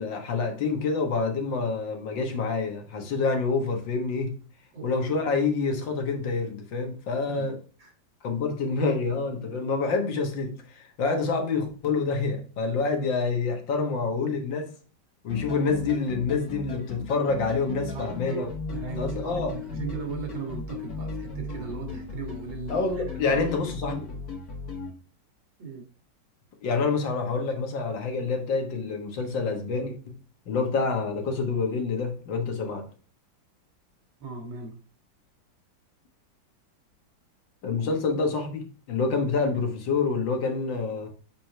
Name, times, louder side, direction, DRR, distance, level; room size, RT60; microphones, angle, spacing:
voice 1, 0.0-4.4 4.8-7.6 8.2-14.7 15.2-18.5 19.0-19.6 22.7-24.1 26.6-30.2 30.5-32.9 37.6-41.1, left 4 dB, 70° left, 2.1 m, -27 dB
voice 2, 7.3-7.9 13.7-13.9 17.9-23.4 25.6-25.9 34.2-34.7, right 5 dB, 80° right, 2.6 m, -38 dB
sound 1, 15.3-24.9, left 4 dB, 55° left, 1.8 m, -37 dB
7.6 x 4.2 x 4.4 m
omnidirectional pair, 2.1 m